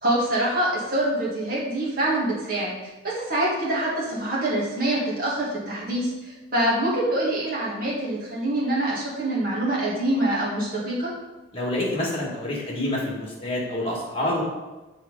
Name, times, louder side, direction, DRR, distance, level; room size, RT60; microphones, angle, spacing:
voice 1, 0.0-2.8 3.0-11.1, right 1 dB, 45° right, -6 dB, 2.0 m, -25 dB
voice 2, 11.5-14.4, left 1 dB, 25° left, -3 dB, 1.7 m, -27 dB
6.2 x 4.2 x 5.1 m, 1.1 s
head